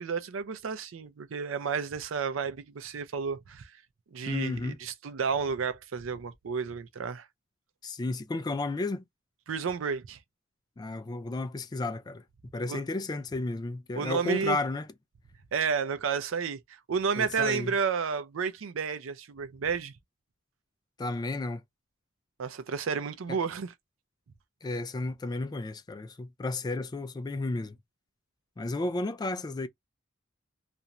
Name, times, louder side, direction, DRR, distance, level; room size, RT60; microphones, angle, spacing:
voice 1, 0.0-3.7 4.1-7.3 9.5-10.2 12.7-12.8 14.0-14.6 15.5-19.9 22.4-23.7, right 6 dB, 75° right, 0.5 m, -31 dB
voice 2, 4.3-4.8 7.8-9.0 10.8-12.2 12.5-14.9 17.2-17.7 21.0-21.6 24.6-27.8 28.6-29.7, left 2 dB, 20° left, 0.3 m, -33 dB
2.5 x 2.1 x 2.8 m
head